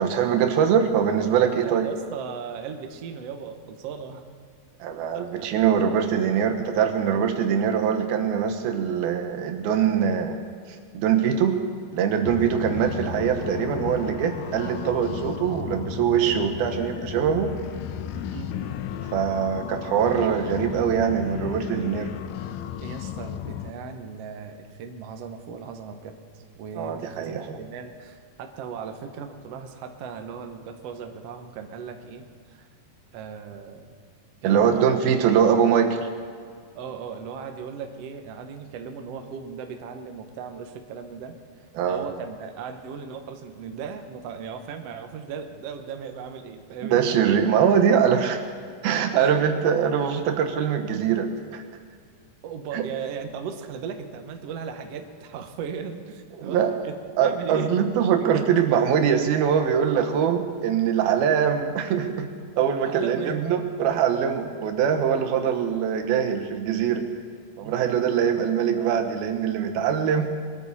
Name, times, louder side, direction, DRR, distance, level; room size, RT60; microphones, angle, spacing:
voice 1, 0.0-1.9 4.8-10.4 10.9-11.6 11.9-17.5 19.1-22.1 26.8-27.6 34.4-36.1 41.8-42.0 46.8-48.4 48.8-51.6 52.7-52.8 56.4-56.8 57.2-62.3 62.6-67.1 67.6-70.3, right 8 dB, 90° right, 5 dB, 3.0 m, -23 dB
voice 2, 1.4-4.2 4.9-5.5 12.2-12.8 18.1-18.5 22.8-32.7 33.1-33.9 34.4-35.0 36.7-47.2 49.1-49.5 52.4-57.7 58.2-58.5 62.8-63.5 67.6-68.0, right 6 dB, 65° right, 5 dB, 1.6 m, -37 dB
sound 1, 12.2-23.7, left 10 dB, 75° left, 2.1 m, -34 dB
22.0 x 13.5 x 4.2 m, 2.1 s
omnidirectional pair, 4.2 m